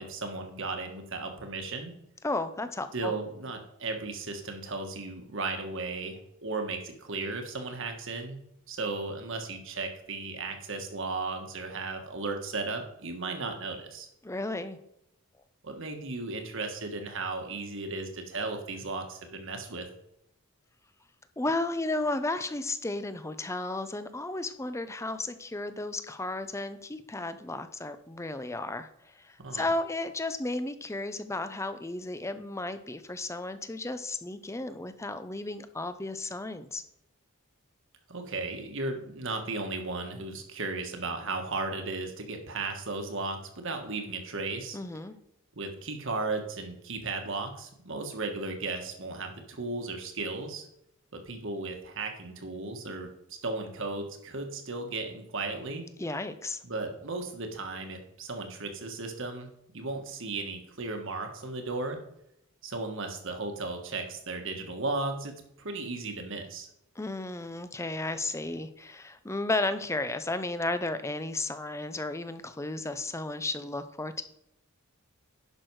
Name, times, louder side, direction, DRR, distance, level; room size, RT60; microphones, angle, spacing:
voice 1, 0.0-1.9 2.9-8.4 8.7-14.1 15.6-19.9 29.4-29.7 38.1-44.8 45.5-50.7 51.2-55.9 56.6-62.0 62.6-65.3 65.6-66.7, right 3 dB, 60° right, 5 dB, 1.5 m, -35 dB
voice 2, 2.2-3.1 14.2-14.8 21.4-36.8 44.7-45.1 56.0-56.6 67.0-74.2, left 2 dB, 15° left, 11 dB, 0.6 m, -33 dB
11.0 x 6.2 x 4.7 m, 0.78 s
head